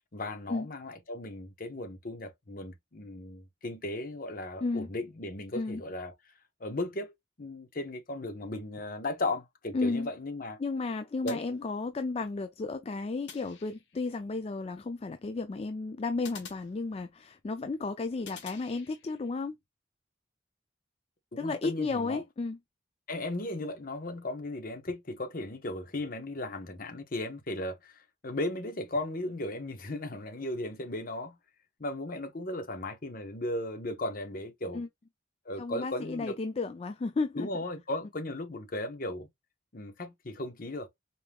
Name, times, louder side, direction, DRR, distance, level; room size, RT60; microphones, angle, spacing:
voice 1, 0.1-6.1 6.6-10.6 11.2-11.4 21.3-22.2 23.1-31.4 31.8-34.8 35.4-36.4 37.3-39.3 39.7-40.9, left 1 dB, 50° left, 0.9 m, -36 dB
voice 2, 9.7-10.1 10.6-19.5 21.4-22.6 34.7-34.9 35.6-37.5, left 3 dB, 35° left, 0.4 m, -33 dB
sound 1, 11.3-12.2 13.3-14.1 16.2-17.4 18.2-19.3, left 6 dB, 75° left, 1.0 m, -50 dB
4.4 x 3.4 x 2.2 m
head